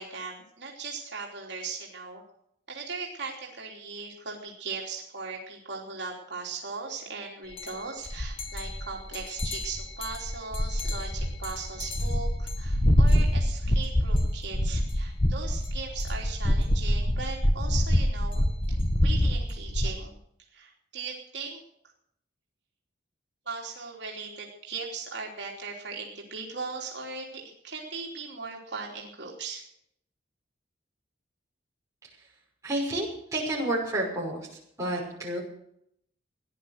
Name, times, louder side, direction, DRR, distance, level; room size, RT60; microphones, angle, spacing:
voice 1, 0.0-2.2 2.7-20.2 20.5-21.6 23.4-29.6, right 4 dB, 65° right, -2 dB, 3.2 m, -38 dB
sound 1, 7.6-7.7 8.1-19.9, equal, 30° left, 1.3 m, -26 dB
voice 2, 32.6-34.5 34.8-35.4, right 1 dB, 15° right, -4 dB, 5.6 m, -30 dB
17.0 x 11.0 x 6.5 m, 0.72 s
head